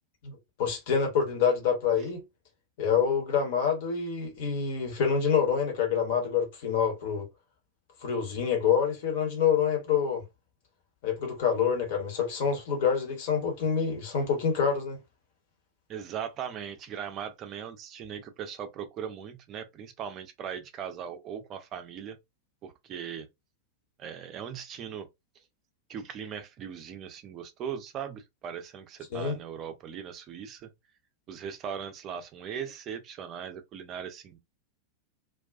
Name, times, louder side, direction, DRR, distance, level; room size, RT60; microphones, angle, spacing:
voice 1, 0.2-2.2 2.8-7.3 8.0-10.2 11.0-15.0 29.1-29.4, left 7 dB, 50° left, 1.0 m, -27 dB
voice 2, 15.9-22.2 22.6-23.3 24.0-25.1 25.9-30.7 31.3-34.4, right 8 dB, 35° right, 0.5 m, -39 dB
2.3 x 2.2 x 2.4 m
figure-of-eight pair, 90°, 0 cm